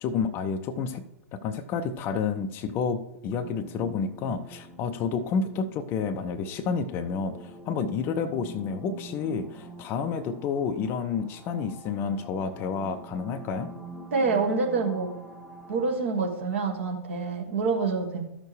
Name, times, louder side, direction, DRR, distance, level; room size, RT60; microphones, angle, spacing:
voice 1, 0.0-1.0 1.3-13.7, left 5 dB, 30° left, 11 dB, 0.5 m, -30 dB
sound 1, 3.3-16.0, right 2 dB, ahead, 0.9 m, -45 dB
voice 2, 14.1-15.1 15.7-18.2, right 4 dB, 55° right, 2 dB, 1.6 m, -26 dB
14.0 x 6.2 x 3.3 m, 0.91 s
figure-of-eight pair, 105°, 8 cm